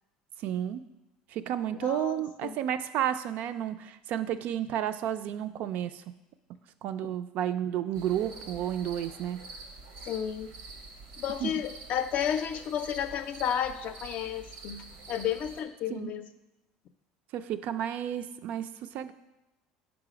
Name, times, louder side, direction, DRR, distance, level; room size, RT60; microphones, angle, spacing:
voice 1, 0.4-0.8 1.3-6.0 6.8-9.4 11.4-11.5 15.9-16.1 17.3-19.1, right 10 dB, 60° right, 11 dB, 0.3 m, -32 dB
voice 2, 1.8-2.6 10.0-10.5 11.2-16.2, left 9 dB, 55° left, 10 dB, 0.4 m, -32 dB
sound 1, 7.9-15.6, right 3 dB, 85° right, 0.8 m, -46 dB
4.8 x 4.0 x 5.0 m, 1.0 s
supercardioid pair, 95°, 3 cm